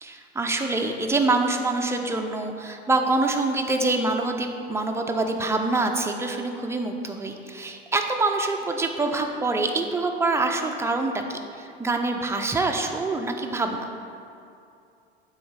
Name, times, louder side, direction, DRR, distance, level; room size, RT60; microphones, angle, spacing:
voice 1, 0.0-13.8, right 2 dB, 10° right, 3 dB, 0.7 m, -25 dB
8.5 x 3.2 x 6.6 m, 2.5 s
hypercardioid pair, 75°, 32 cm